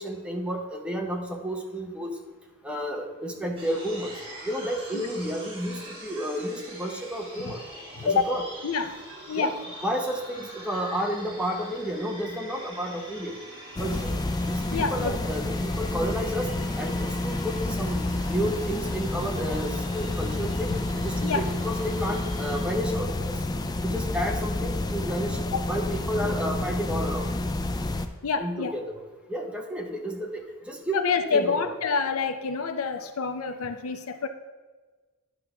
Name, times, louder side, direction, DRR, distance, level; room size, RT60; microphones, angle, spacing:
voice 1, 0.0-2.1 2.6-4.1 4.5-7.6 8.0-8.4 9.3-9.5 9.8-13.3 13.8-14.1 14.5-16.5 16.8-23.3 23.8-25.4 25.7-27.3 28.4-28.8 29.3-31.0 31.3-31.7, equal, 5° right, 2 dB, 0.7 m, -31 dB
sound 1, 3.6-22.6, right 1 dB, 25° right, 1.6 m, -44 dB
voice 2, 8.0-8.3 8.6-9.0 9.3-9.6 14.7-15.2 21.2-21.5 25.5-25.6 26.2-26.4 28.2-28.7 30.9-34.3, left 5 dB, 70° left, 9 dB, 0.6 m, -27 dB
sound 2, 13.8-28.1, left 2 dB, 20° left, 0.3 m, -29 dB
10.0 x 3.4 x 5.9 m, 1.3 s
head